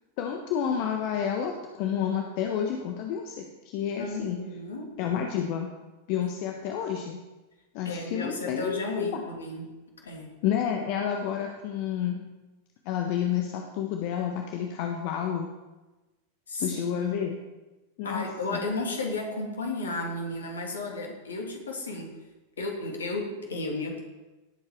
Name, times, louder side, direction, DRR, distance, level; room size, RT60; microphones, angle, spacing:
voice 1, 0.2-4.4 5.0-5.7 6.1-7.2 7.7-9.2 10.4-12.2 12.8-15.5 16.6-17.4 18.0-18.6, left 8 dB, 45° left, 3 dB, 1.3 m, -30 dB
voice 2, 4.0-4.9 7.8-9.7 10.0-10.3 16.5-17.0 18.0-22.1 22.6-24.0, left 2 dB, 70° left, 1 dB, 3.0 m, -33 dB
18.0 x 7.9 x 4.7 m, 1.1 s
figure-of-eight pair, 90°, 0 cm